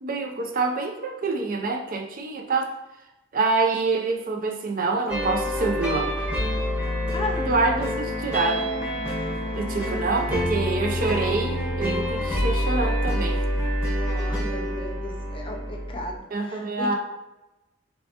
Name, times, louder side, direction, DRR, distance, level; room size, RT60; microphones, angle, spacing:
voice 1, 0.0-2.7 3.3-6.2 7.5-8.7 9.6-13.4 16.3-17.0, right 3 dB, 50° right, 3 dB, 0.5 m, -26 dB
sound 1, 5.1-16.2, equal, 5° right, 1.1 m, -27 dB
voice 2, 7.1-7.6 9.1-9.6 10.3-10.4 14.0-17.0, left 1 dB, 30° left, 2 dB, 0.5 m, -36 dB
4.4 x 3.3 x 2.8 m, 0.98 s
head